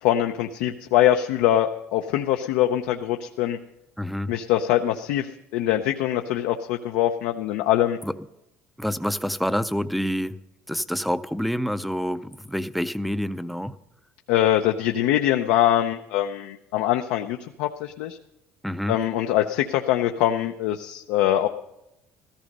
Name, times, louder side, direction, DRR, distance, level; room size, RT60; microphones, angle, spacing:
voice 1, 0.0-3.6 4.3-8.0 14.3-18.2 18.9-21.5, left 12 dB, 90° left, 5 dB, 0.7 m, -23 dB
voice 2, 4.0-4.3 8.0-8.1 8.8-10.4 10.7-13.7 18.6-19.0, equal, ahead, 12 dB, 0.4 m, -27 dB
14.5 x 14.0 x 5.3 m, 0.87 s
cardioid pair, 150°, 4 cm